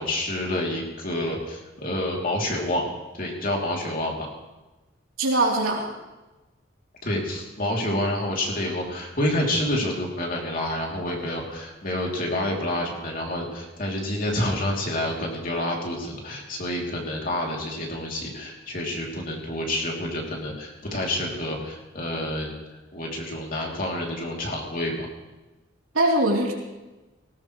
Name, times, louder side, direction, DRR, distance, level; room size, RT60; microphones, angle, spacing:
voice 1, 0.0-2.8 3.1-4.3 7.0-22.5 22.9-25.1, left 1 dB, 40° left, -1 dB, 3.2 m, -28 dB
voice 2, 5.2-5.9 25.9-26.5, right 1 dB, 90° right, -2 dB, 3.5 m, -21 dB
19.0 x 18.0 x 3.3 m, 1.1 s
head